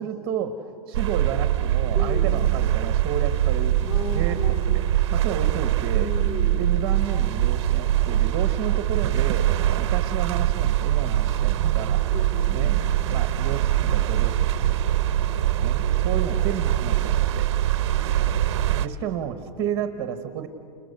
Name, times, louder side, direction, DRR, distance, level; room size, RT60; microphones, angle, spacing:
voice 1, 0.0-4.6 4.9-6.1 6.5-12.1 12.5-12.8 13.1-15.0 15.6-17.5 18.8-20.5, right 9 dB, 20° right, 8 dB, 1.0 m, -32 dB
sound 1, 0.9-18.9, right 12 dB, 40° right, 0.7 m, -23 dB
voice 2, 1.9-2.4 3.9-4.8 5.9-6.7 12.1-12.7 16.0-16.4 17.9-18.4, left 3 dB, 35° left, 2 dB, 3.3 m, -35 dB
29.5 x 29.5 x 6.6 m, 2.3 s
supercardioid pair, 180°, 21 cm